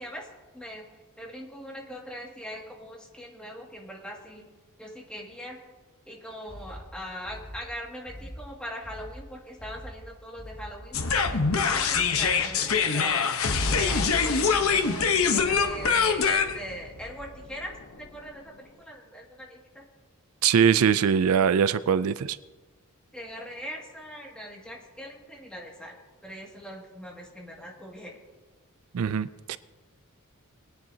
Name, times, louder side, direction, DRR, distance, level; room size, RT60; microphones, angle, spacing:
voice 1, 0.0-4.5 4.8-5.6 6.1-13.2 13.7-19.9 23.1-26.0 26.2-28.2, equal, 5° left, -2 dB, 2.1 m, -41 dB
sound 1, 6.5-12.5, equal, 25° left, 2.4 m, -44 dB
sound 2, 10.9-18.1, left 5 dB, 70° left, 1.0 m, -24 dB
voice 2, 20.4-22.4 28.9-29.6, right 7 dB, 80° right, 15 dB, 0.4 m, -22 dB
21.0 x 10.5 x 2.8 m, 1.2 s
head